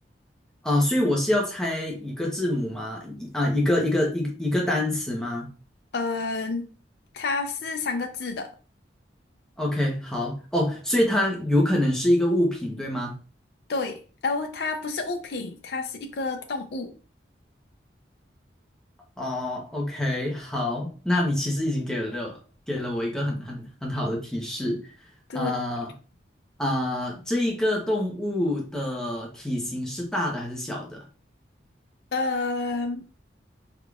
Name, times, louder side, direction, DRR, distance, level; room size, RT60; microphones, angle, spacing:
voice 1, 0.6-5.5 9.6-13.1 19.2-22.4 22.7-24.8 25.3-25.9 26.6-31.0, left 1 dB, 5° left, 0.8 m, -26 dB
voice 2, 5.9-6.7 7.1-8.5 13.7-16.9 25.3-25.5 32.1-33.1, left 3 dB, 65° left, 0.5 m, -29 dB
4.7 x 3.6 x 2.4 m
head